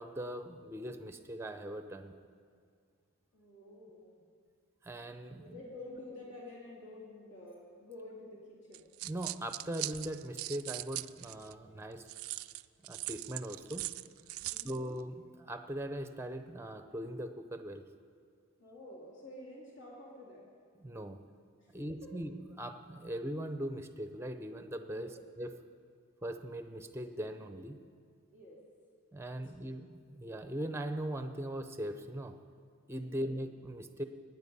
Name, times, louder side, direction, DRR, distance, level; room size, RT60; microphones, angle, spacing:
voice 1, 0.0-2.1 4.8-5.6 9.0-12.1 12.9-13.8 14.6-17.8 20.8-21.2 21.7-25.1 25.4-25.5 26.2-27.8 29.1-32.4 32.9-34.0, right 1 dB, 10° right, 8 dB, 0.6 m, -40 dB
voice 2, 3.3-4.2 5.3-8.9 14.4-14.8 18.6-20.5 21.6-22.1 24.9-25.2 28.3-28.6 29.6-29.7 33.0-33.3, left 2 dB, 55° left, -4 dB, 2.8 m, -50 dB
sound 1, 8.7-11.5 12.1-14.8, right 18 dB, 75° right, 0.3 m, -40 dB
21.0 x 9.4 x 5.4 m, 2.1 s
head